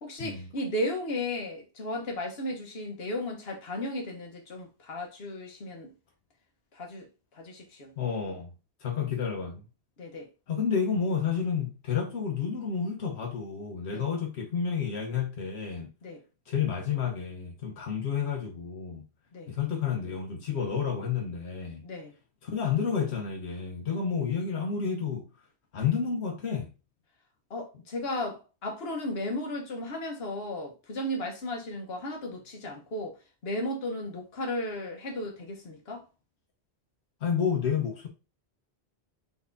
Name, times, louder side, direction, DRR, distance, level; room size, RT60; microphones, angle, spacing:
voice 1, 0.0-5.9 6.7-7.1 7.3-7.9 10.0-10.3 13.9-14.1 16.0-16.2 19.3-19.5 21.8-22.1 27.5-33.2 33.4-36.0, left 1 dB, 70° left, 1.4 m, -35 dB
voice 2, 8.0-8.5 8.8-9.6 10.5-15.9 16.5-19.0 19.5-21.8 22.4-25.2 25.7-26.7 37.2-38.1, left 7 dB, 90° left, 1.3 m, -30 dB
4.2 x 4.1 x 2.7 m
omnidirectional pair, 1.1 m